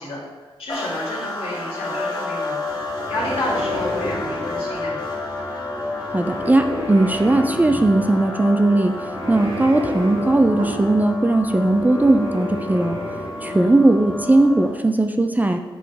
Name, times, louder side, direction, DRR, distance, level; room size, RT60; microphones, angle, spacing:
voice 1, 0.0-2.6 3.1-5.0 13.4-13.7, left 1 dB, 70° left, -5 dB, 2.0 m, -30 dB
sound 1, 0.7-14.9, left 2 dB, 45° left, 1.7 m, -30 dB
sound 2, 2.7-14.5, right 1 dB, 55° right, 1.4 m, -34 dB
voice 2, 6.1-8.9 9.3-13.0 13.4-15.6, right 2 dB, 15° right, 6 dB, 0.4 m, -18 dB
7.5 x 3.8 x 3.4 m, 1.2 s
cardioid pair, 70°, 10 cm